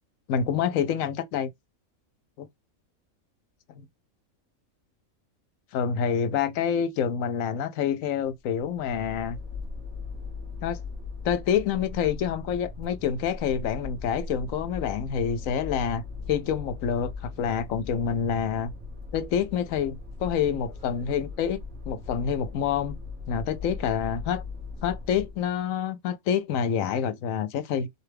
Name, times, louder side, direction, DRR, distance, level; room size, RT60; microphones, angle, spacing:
voice 1, 0.3-1.5 2.4-2.5 3.8-3.9 5.7-9.4 10.6-10.8 11.2-16.0 16.3-18.7 19.1-21.6 21.9-23.0 23.3-24.4 24.8-27.9, left 8 dB, 75° left, 1.0 m, -27 dB
sound 1, 8.4-25.5, left 4 dB, 75° right, 2.0 m, -39 dB
4.4 x 2.3 x 3.3 m
omnidirectional pair, 1.4 m